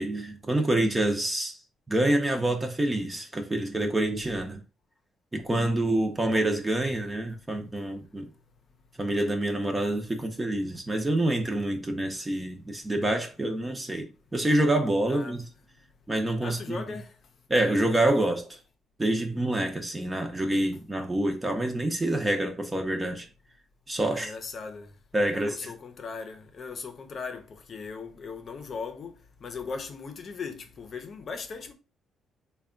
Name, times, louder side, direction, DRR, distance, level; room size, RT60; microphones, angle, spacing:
voice 1, 0.0-1.6 1.9-4.6 5.3-8.3 9.0-15.4 16.1-16.8 17.5-18.6 19.0-23.3 23.9-24.3 25.1-25.6, right 1 dB, 20° right, 0.7 m, -27 dB
voice 2, 15.1-15.4 16.4-17.1 24.1-24.9 25.3-31.7, left 5 dB, 50° left, 0.7 m, -38 dB
3.5 x 2.3 x 3.7 m
cardioid pair, 90°, 0 cm